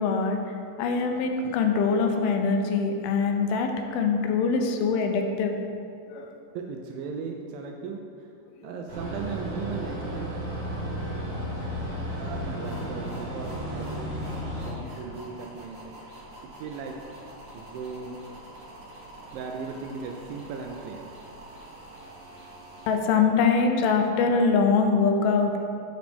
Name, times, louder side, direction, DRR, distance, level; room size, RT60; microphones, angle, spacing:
voice 1, 0.0-5.6 6.1-6.3 8.6-8.7 22.9-25.6, left 5 dB, 85° left, 4 dB, 2.4 m, -23 dB
voice 2, 6.6-8.3 8.6-10.5 12.2-14.2 14.5-15.9 16.4-17.0 17.5-18.2 19.3-21.1, right 5 dB, 80° right, 2 dB, 2.1 m, -37 dB
sound 1, 8.9-14.7, equal, 45° right, 1.3 m, -33 dB
sound 2, 12.6-22.9, right 1 dB, 65° right, 1.1 m, -46 dB
7.9 x 6.3 x 3.4 m, 2.5 s
omnidirectional pair, 4.3 m